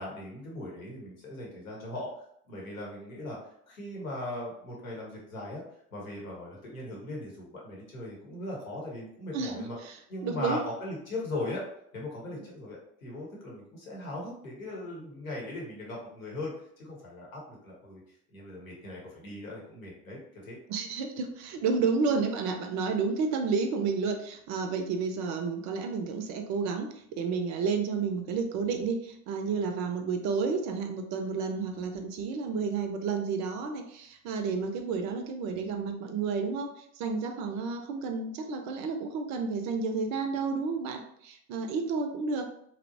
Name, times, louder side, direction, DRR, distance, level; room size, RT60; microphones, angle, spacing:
voice 1, 0.0-2.1 2.5-3.4 3.7-5.6 5.9-9.8 10.1-11.6 11.9-18.0 18.3-20.6, left 1 dB, 85° left, -3 dB, 0.9 m, -39 dB
voice 2, 9.3-9.9 10.2-10.6 20.7-26.9 27.2-42.5, right 5 dB, 45° right, 6 dB, 0.4 m, -31 dB
2.8 x 2.0 x 2.6 m, 0.70 s
figure-of-eight pair, 60°, 41 cm